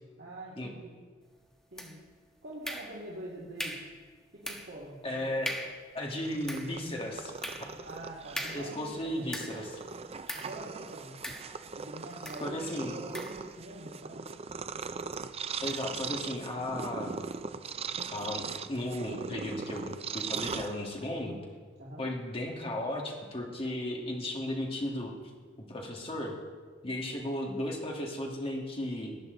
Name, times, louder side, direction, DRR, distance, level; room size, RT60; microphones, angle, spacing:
voice 1, 0.2-0.9 1.7-2.0 2.4-3.8 4.3-5.5 7.8-9.3 10.3-11.2 11.7-14.3 21.8-22.1, right 1 dB, 65° right, -7 dB, 2.5 m, -45 dB
sound 1, 1.8-2.2 2.6-3.2 3.6-4.0 4.4-4.8 5.1-5.2 5.4-5.9 6.3-9.7 10.3-10.6 11.2-11.8 12.2-12.5 13.1-13.4, equal, 5° left, 1.2 m, -40 dB
voice 2, 5.0-5.6 5.9-7.3 8.4-9.8 12.4-13.0 15.6-17.1 18.1-21.4 22.0-25.1 25.7-26.4 26.8-29.2, left 1 dB, 30° left, 0 dB, 2.2 m, -35 dB
Purr, 6.0-21.2, right 5 dB, 35° right, 0.5 m, -40 dB
18.5 x 10.5 x 4.0 m, 1.5 s
head